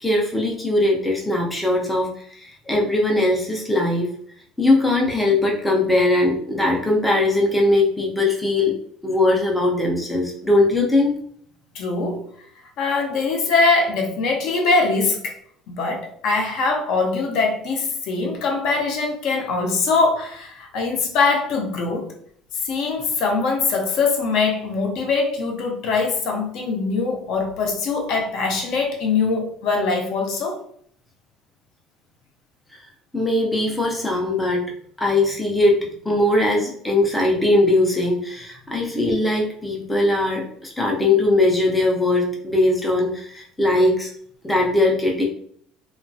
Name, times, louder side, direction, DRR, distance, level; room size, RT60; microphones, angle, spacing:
voice 1, 0.0-2.1 2.4-4.1 4.6-8.7 9.0-11.1 33.1-34.6 35.0-35.8 36.1-44.1 44.4-45.2, left 2 dB, 5° left, -1 dB, 0.4 m, -20 dB
voice 2, 11.7-12.2 12.8-15.4 15.7-22.1 22.6-30.6, left 4 dB, 55° left, 1 dB, 0.5 m, -22 dB
2.9 x 2.1 x 2.6 m, 0.64 s
cardioid pair, 160°, 0 cm